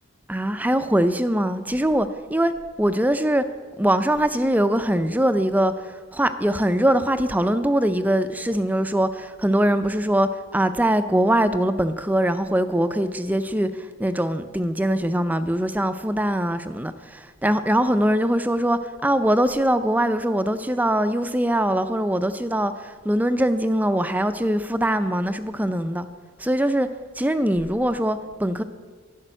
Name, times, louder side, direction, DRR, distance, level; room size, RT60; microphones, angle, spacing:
voice 1, 0.3-2.5 2.8-3.4 3.8-26.1 26.4-26.9 27.2-28.6, right 1 dB, 10° right, 10 dB, 0.4 m, -22 dB
12.0 x 7.1 x 10.0 m, 1.5 s
head